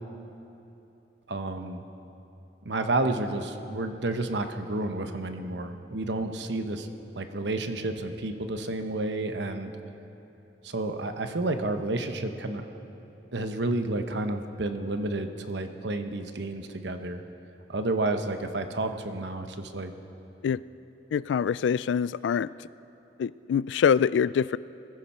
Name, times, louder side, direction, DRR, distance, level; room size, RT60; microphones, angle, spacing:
voice 1, 1.3-1.8 2.6-6.9 7.2-9.7 10.6-12.6 13.3-17.2 17.7-19.9, right 2 dB, 75° right, 7 dB, 1.0 m, -30 dB
voice 2, 21.1-22.5 23.2-24.6, left 7 dB, 90° left, 19 dB, 0.3 m, -24 dB
22.0 x 15.0 x 4.3 m, 2.9 s
head